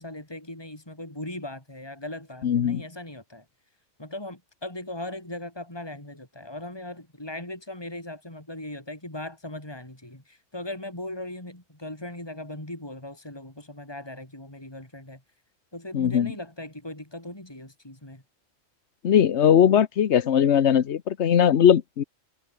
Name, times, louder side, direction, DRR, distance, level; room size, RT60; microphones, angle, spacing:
voice 1, 0.0-3.4 4.0-15.2 15.7-18.2, left 1 dB, 20° left, 4.7 m, -38 dB
voice 2, 2.4-2.8 15.9-16.3 19.0-22.0, left 9 dB, 65° left, 1.2 m, -19 dB
omnidirectional pair, 1.3 m